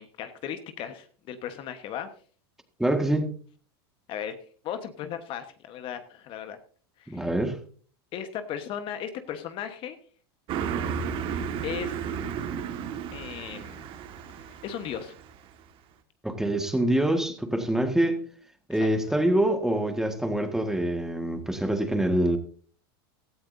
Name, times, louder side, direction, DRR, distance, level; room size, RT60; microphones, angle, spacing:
voice 1, 0.0-2.1 4.1-4.4 4.6-6.6 7.0-7.3 8.1-10.0 11.6-12.0 13.1-13.8 14.5-15.1 18.7-19.2, left 9 dB, 45° left, 1.2 m, -36 dB
voice 2, 2.8-3.3 7.1-7.6 16.2-18.2 18.7-22.4, right 1 dB, 5° right, 1.7 m, -25 dB
Car passing by, 10.5-15.4, right 7 dB, 45° right, 1.7 m, -33 dB
16.5 x 13.0 x 2.7 m
supercardioid pair, 120°, 13 cm